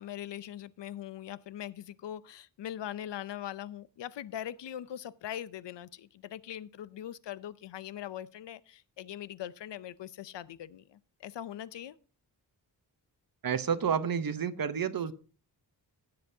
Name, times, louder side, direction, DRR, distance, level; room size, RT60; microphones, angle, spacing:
voice 1, 0.0-12.0, left 11 dB, 85° left, 0.6 m, -41 dB
voice 2, 13.4-15.1, right 7 dB, 55° right, 0.8 m, -30 dB
16.0 x 7.7 x 2.7 m
wide cardioid pair, 140°, 41 cm